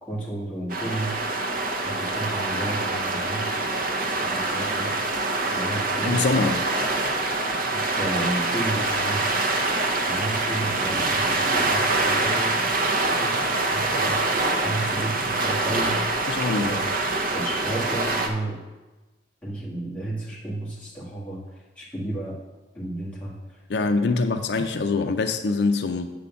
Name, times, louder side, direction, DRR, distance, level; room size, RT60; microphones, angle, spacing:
voice 1, 0.0-1.2 1.8-3.6 4.1-4.9 5.5-6.6 7.7-9.3 10.0-16.2 16.5-16.8 17.3-18.6 19.4-22.4 22.8-23.6, right 1 dB, 5° left, -6 dB, 1.7 m, -33 dB
sound 1, 0.7-18.3, right 2 dB, 50° right, 0.7 m, -25 dB
voice 2, 6.1-6.6 16.3-16.8 23.7-26.1, left 3 dB, 65° left, 7 dB, 0.5 m, -24 dB
8.4 x 3.8 x 6.9 m, 1.2 s
head